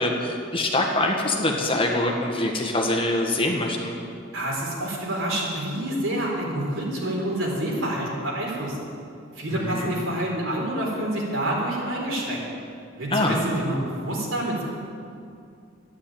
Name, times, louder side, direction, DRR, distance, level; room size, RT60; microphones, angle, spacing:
voice 1, 0.0-3.9 9.5-9.9 13.1-13.4, left 1 dB, 25° left, 1 dB, 1.7 m, -24 dB
voice 2, 4.3-8.8 9.3-12.4 13.0-14.6, right 1 dB, 85° right, -3 dB, 4.2 m, -27 dB
13.0 x 9.6 x 8.9 m, 2.5 s
head